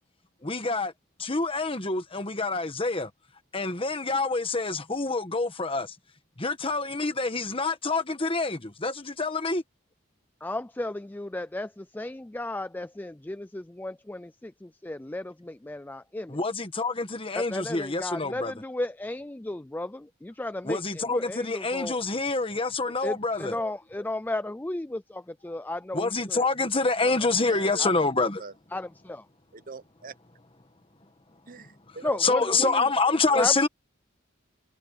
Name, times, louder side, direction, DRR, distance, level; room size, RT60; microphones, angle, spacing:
voice 1, 0.4-0.9 1.2-3.1 3.5-6.0 6.4-9.6 16.3-18.5 20.6-23.5 25.9-28.4 32.2-33.7, left 3 dB, 25° left, 1.4 m, -27 dB
voice 2, 10.4-16.4 17.3-22.0 23.0-26.5 27.1-27.2 27.8-27.9 28.7-29.3 32.0-32.8 33.4-33.7, left 1 dB, 10° left, 0.4 m, -34 dB
voice 3, 27.5-27.9 28.4-28.5 29.5-30.2 31.5-33.5, right 4 dB, 40° right, 1.0 m, -42 dB
head